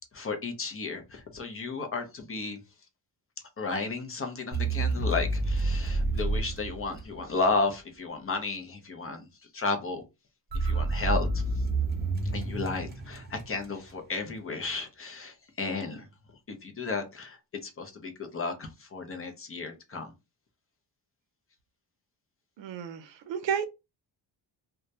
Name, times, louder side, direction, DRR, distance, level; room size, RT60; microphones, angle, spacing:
voice 1, 0.1-2.6 3.6-9.3 9.5-10.0 10.5-11.4 12.3-16.1 16.5-20.1, left 3 dB, 30° left, 0.5 m, -33 dB
sound 1, 4.5-7.5 10.5-13.9, right 2 dB, 25° right, 0.5 m, -29 dB
voice 2, 22.6-23.7, right 7 dB, 75° right, 0.6 m, -32 dB
2.2 x 2.1 x 2.7 m
cardioid pair, 110°, 45 cm